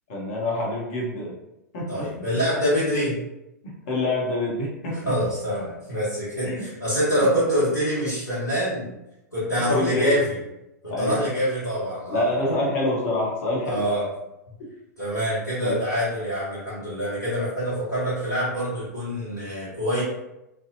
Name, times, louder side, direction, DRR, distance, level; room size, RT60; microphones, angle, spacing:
voice 1, 0.1-1.3 1.7-2.1 3.6-5.1 6.4-6.7 7.2-7.3 9.7-10.1 10.9-11.2 12.1-13.9 14.6-14.7 15.6-15.8, left 1 dB, 50° left, -4 dB, 0.9 m, -26 dB
voice 2, 1.9-3.2 5.0-8.9 9.3-10.4 11.0-12.3 13.7-14.0 15.0-20.0, equal, 85° left, -10 dB, 0.8 m, -25 dB
2.6 x 2.1 x 2.5 m, 0.92 s
figure-of-eight pair, 95°, 9 cm